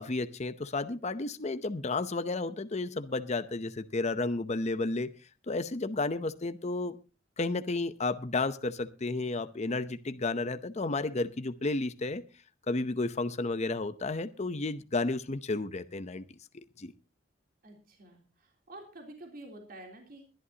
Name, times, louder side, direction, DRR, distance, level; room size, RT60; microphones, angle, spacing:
voice 1, 0.0-5.1 5.5-6.9 7.4-12.2 12.7-16.2 16.8-16.9, left 3 dB, 35° left, 11 dB, 0.7 m, -32 dB
voice 2, 17.6-20.3, right 1 dB, 50° right, 2 dB, 3.3 m, -49 dB
22.0 x 11.5 x 2.8 m, 0.31 s
head